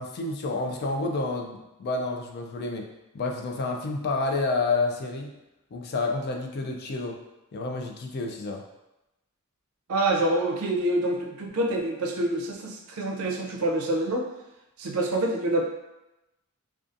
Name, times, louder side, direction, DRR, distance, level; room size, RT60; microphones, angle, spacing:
voice 1, 0.0-2.9 3.1-5.3 5.7-7.2 7.5-8.6, left 3 dB, 50° left, 2 dB, 0.3 m, -29 dB
voice 2, 9.9-14.2 14.8-15.6, right 1 dB, 80° right, 0 dB, 0.5 m, -26 dB
2.5 x 2.3 x 2.5 m, 0.96 s
head